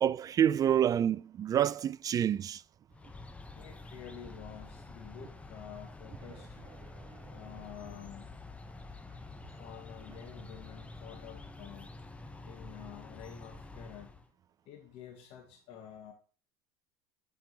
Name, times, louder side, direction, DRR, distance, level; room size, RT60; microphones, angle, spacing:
voice 1, 0.0-2.6, right 10 dB, 30° right, 0.3 m, -27 dB
sound 1, 2.9-14.3, left 2 dB, 10° left, 0.8 m, -48 dB
voice 2, 3.2-6.6 7.3-8.3 9.6-11.9 12.4-14.1 14.7-16.1, left 9 dB, 60° left, 1.3 m, -49 dB
7.4 x 5.1 x 4.0 m
hypercardioid pair, 90°, 11 cm